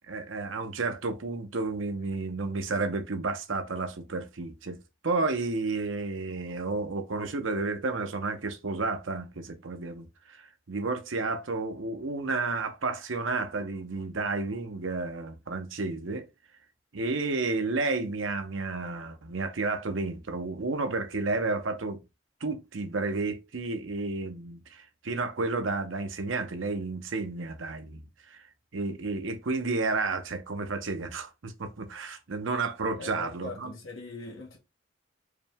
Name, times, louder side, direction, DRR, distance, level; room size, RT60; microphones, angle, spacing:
voice 1, 0.1-4.8 5.0-16.3 16.9-22.0 22.4-28.0 28.3-28.4 28.7-33.7, right 3 dB, 75° right, 0.7 m, -31 dB
voice 2, 32.9-34.6, left 4 dB, 75° left, 1.6 m, -41 dB
4.9 x 2.2 x 3.4 m
head